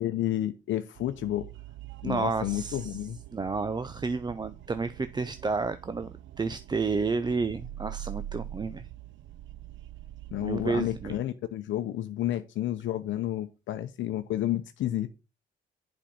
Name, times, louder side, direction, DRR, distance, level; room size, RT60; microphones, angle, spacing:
voice 1, 0.0-1.5 2.0-3.2 10.3-15.1, left 13 dB, 75° left, 0.7 m, -31 dB
sound 1, 1.0-11.2, right 13 dB, 70° right, 0.6 m, -44 dB
voice 2, 2.0-3.0 3.3-6.1 6.4-8.9 10.4-11.2, right 4 dB, 20° right, 0.5 m, -31 dB
7.5 x 5.4 x 5.2 m
cardioid pair, 90°, 20 cm